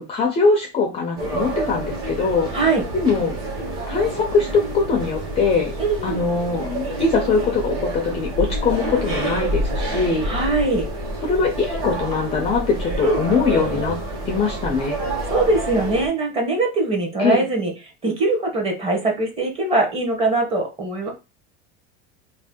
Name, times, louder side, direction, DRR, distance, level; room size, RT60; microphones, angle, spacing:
voice 1, 0.0-2.5 2.9-3.4 3.9-10.3 11.2-14.0 14.3-15.0 17.2-17.4, left 4 dB, 20° left, 2 dB, 0.4 m, -22 dB
sound 1, 1.2-16.1, right 1 dB, 45° right, 1.2 m, -28 dB
voice 2, 2.5-2.8 5.8-6.2 10.2-10.9 13.0-13.2 15.3-17.7 18.0-21.1, right 2 dB, 20° right, 2 dB, 0.8 m, -21 dB
2.7 x 2.2 x 3.5 m, 0.28 s
cardioid pair, 165°, 30 cm